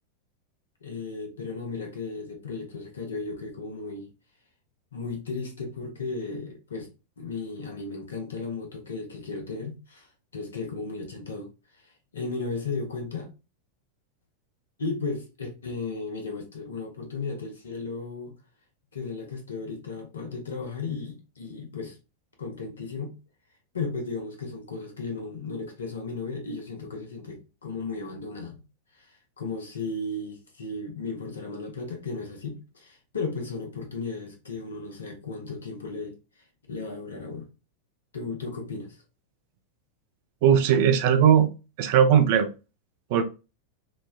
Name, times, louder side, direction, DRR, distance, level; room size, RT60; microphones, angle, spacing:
voice 1, 0.8-4.1 4.9-6.9 7.2-11.5 11.8-13.3 14.8-18.3 18.9-22.0 22.4-23.2 23.7-28.6 28.9-36.2 36.7-37.5 38.1-39.0, left 3 dB, 70° left, 0.8 m, -35 dB
voice 2, 40.4-41.5 41.8-42.5 43.1-43.2, right 8 dB, 50° right, 0.4 m, -18 dB
3.1 x 2.1 x 2.3 m
figure-of-eight pair, 90°, 0 cm